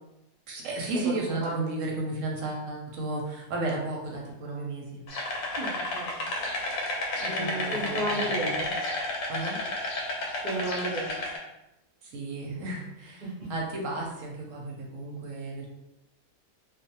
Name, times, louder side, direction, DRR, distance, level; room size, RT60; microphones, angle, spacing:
voice 1, 0.5-5.0 7.2-8.6 9.3-9.6 12.0-13.2 13.5-15.7, right 2 dB, 70° right, -1 dB, 0.8 m, -34 dB
voice 2, 1.0-1.7 5.5-6.2 7.3-8.7 10.4-11.2 13.2-13.3, right 1 dB, 50° right, -7 dB, 0.5 m, -33 dB
sound 1, 5.1-11.4, left 2 dB, 70° left, 0.9 m, -31 dB
2.6 x 2.1 x 2.7 m, 0.91 s
omnidirectional pair, 1.6 m